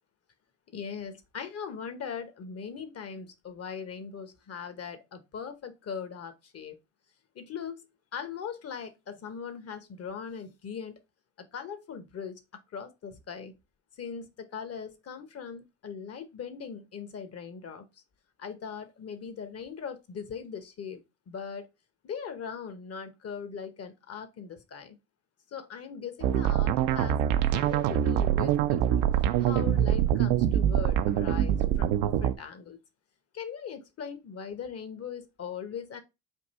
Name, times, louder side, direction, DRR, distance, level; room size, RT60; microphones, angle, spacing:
voice 1, 0.7-6.8 7.3-7.9 8.1-11.0 11.4-12.4 12.7-13.5 14.0-17.8 18.4-21.0 21.3-21.7 22.0-25.0 25.5-27.2 27.5-29.1 29.4-32.8 33.3-36.0, left 6 dB, 45° left, 1.0 m, -40 dB
sound 1, 26.2-32.3, right 10 dB, 75° right, 0.5 m, -25 dB
3.6 x 2.6 x 4.1 m
hypercardioid pair, 60°, 34 cm